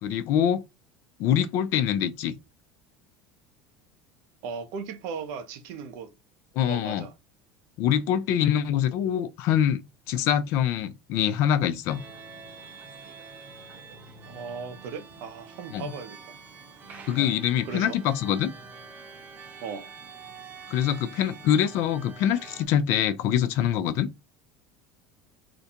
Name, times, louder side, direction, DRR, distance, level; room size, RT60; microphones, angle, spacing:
voice 1, 0.0-0.7 1.2-2.4 6.6-7.0 7.8-9.8 10.1-12.1 15.7-15.9 17.1-18.5 20.7-24.1, left 10 dB, 55° left, 0.3 m, -24 dB
voice 2, 4.4-6.1 6.7-7.1 14.2-16.4 17.2-17.3 17.6-18.0 19.6-19.9, right 5 dB, 65° right, 0.6 m, -37 dB
sound 1, 11.9-22.7, right 5 dB, 35° right, 0.8 m, -46 dB
2.5 x 2.2 x 2.7 m
supercardioid pair, 140°, 5 cm